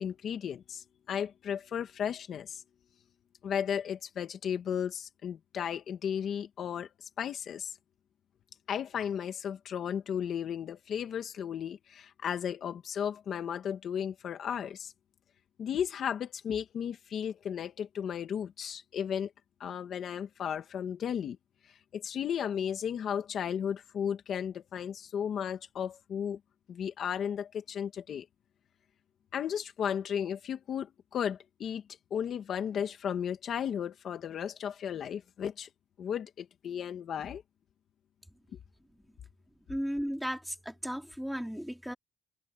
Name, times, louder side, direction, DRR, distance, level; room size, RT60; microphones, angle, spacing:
voice 1, 0.0-2.6 3.4-7.7 8.7-14.9 15.6-19.3 19.6-21.4 21.9-26.4 26.7-28.3 29.3-31.8 32.1-35.7 36.0-37.4, left 8 dB, 55° left, 1.8 m, -34 dB
voice 2, 39.7-41.9, equal, ahead, 3.5 m, -35 dB
open air
cardioid pair, 140°, 0 cm